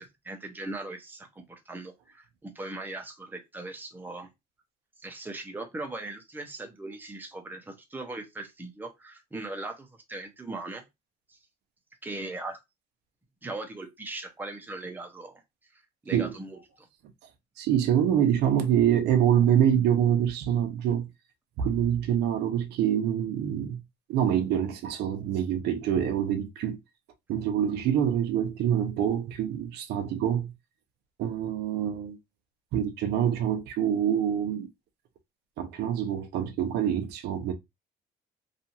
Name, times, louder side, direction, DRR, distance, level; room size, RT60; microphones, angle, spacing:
voice 1, 0.0-4.3 5.0-10.8 11.3-11.4 12.0-12.6 13.4-15.4 16.0-16.9, right 2 dB, 10° right, 0.7 m, -39 dB
voice 2, 17.6-21.1 21.6-23.8 24.1-26.8 27.3-30.5 31.2-32.2 32.7-34.7 35.6-37.5, right 9 dB, 75° right, 0.5 m, -25 dB
2.7 x 2.4 x 2.7 m
cardioid pair, 110°, 17 cm